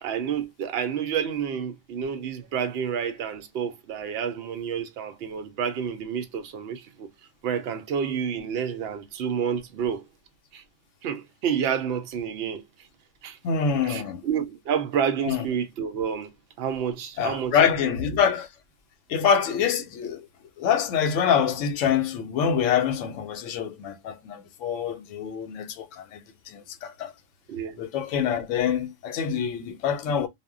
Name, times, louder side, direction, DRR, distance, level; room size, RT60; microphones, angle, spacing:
voice 1, 0.0-7.1 7.4-10.0 10.5-10.6 11.0-12.6 13.2-13.4 13.8-16.3 16.6-17.9 27.5-27.8, right 7 dB, 65° right, 0.7 m, -29 dB
voice 2, 13.4-14.2 15.2-15.4 17.2-18.5 19.1-20.3 20.6-27.1 27.8-30.3, left 7 dB, 90° left, 0.9 m, -25 dB
2.1 x 2.1 x 3.5 m
omnidirectional pair, 1.3 m